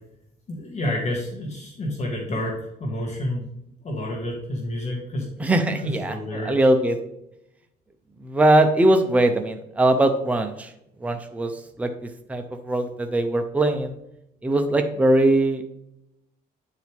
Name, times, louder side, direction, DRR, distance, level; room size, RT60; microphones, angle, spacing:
voice 1, 0.5-3.4 3.8-5.3 5.8-6.5, left 1 dB, 40° left, -1 dB, 1.8 m, -29 dB
voice 2, 5.4-7.0 8.2-10.7 11.0-11.5 11.8-14.0 14.4-15.8, right 1 dB, 10° right, 5 dB, 0.7 m, -21 dB
9.2 x 4.7 x 3.5 m, 0.81 s
cardioid pair, 110°, 17 cm